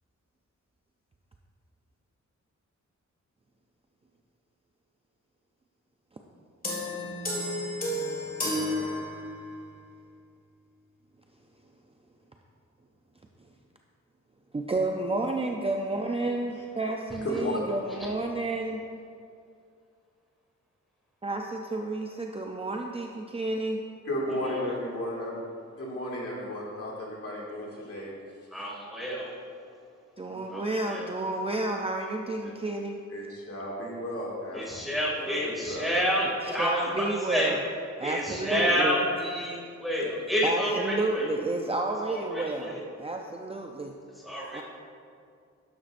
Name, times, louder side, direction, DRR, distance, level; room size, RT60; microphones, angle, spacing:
sound 1, 6.6-9.6, left 1 dB, 30° left, 1.9 m, -32 dB
voice 1, 14.5-18.9 21.2-23.8 30.2-33.0 36.4-37.6 38.0-39.0 40.4-44.0 44.5-44.6, right 2 dB, 20° right, 1 dB, 0.5 m, -31 dB
voice 2, 24.1-25.4 25.8-28.1 30.3-30.4 33.1-34.6 35.2-35.9, left 1 dB, 50° left, -4 dB, 2.2 m, -34 dB
voice 3, 28.5-29.3 30.5-31.1 34.5-37.5 38.0-41.2 42.1-42.8 44.2-44.6, equal, ahead, -5 dB, 2.3 m, -29 dB
12.0 x 11.0 x 2.6 m, 2.3 s
wide cardioid pair, 160°, 30 cm